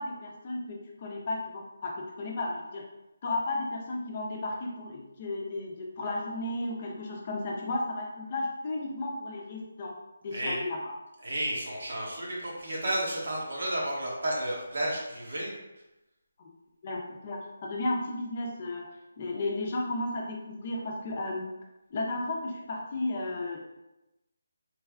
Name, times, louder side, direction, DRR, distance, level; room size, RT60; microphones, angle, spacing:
voice 1, 0.0-2.8 3.2-9.9 10.2-10.9 16.8-18.9 19.2-21.5 21.9-23.6, left 2 dB, 35° left, -1 dB, 0.6 m, -34 dB
voice 2, 11.2-15.5, right 1 dB, 70° right, -3 dB, 1.2 m, -32 dB
3.2 x 2.1 x 3.6 m, 0.96 s
figure-of-eight pair, 165°, 0 cm